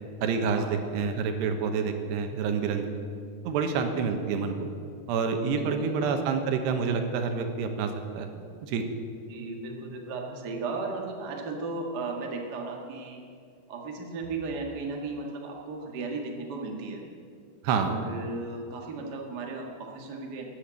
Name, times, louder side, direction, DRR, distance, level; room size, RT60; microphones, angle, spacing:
voice 1, 0.2-2.9 3.4-4.7 5.1-8.3 8.6-8.8 17.6-17.9, right 5 dB, 80° right, 6 dB, 3.2 m, -28 dB
voice 2, 3.1-3.4 5.5-6.0 9.3-13.3 13.7-17.0 17.8-20.4, right 3 dB, 55° right, 0 dB, 1.1 m, -36 dB
13.0 x 10.0 x 8.8 m, 2.3 s
omnidirectional pair, 4.9 m